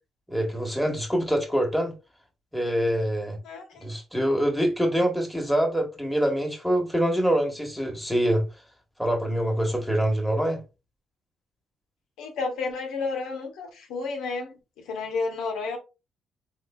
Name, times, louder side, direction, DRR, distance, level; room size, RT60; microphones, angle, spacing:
voice 1, 0.3-1.9 2.5-3.4 3.8-8.4 9.0-10.6, equal, ahead, 1.2 m, -25 dB
voice 2, 3.4-3.9 12.2-15.8, left 4 dB, 90° left, 0.9 m, -31 dB
3.6 x 3.1 x 2.3 m
cardioid pair, 90°, 0 cm